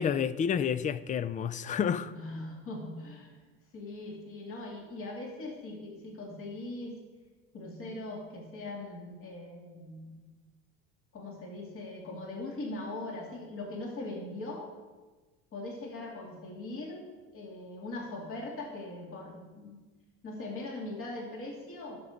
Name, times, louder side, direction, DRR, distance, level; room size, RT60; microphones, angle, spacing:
voice 1, 0.0-2.1, left 7 dB, 25° left, 0.4 m, -29 dB
voice 2, 2.1-3.3 3.7-7.0 7.5-10.2 11.1-14.7 15.5-17.0 17.3-19.8 20.2-22.0, left 2 dB, 45° left, 2.6 m, -40 dB
12.0 x 6.1 x 5.1 m
supercardioid pair, 90°, 31 cm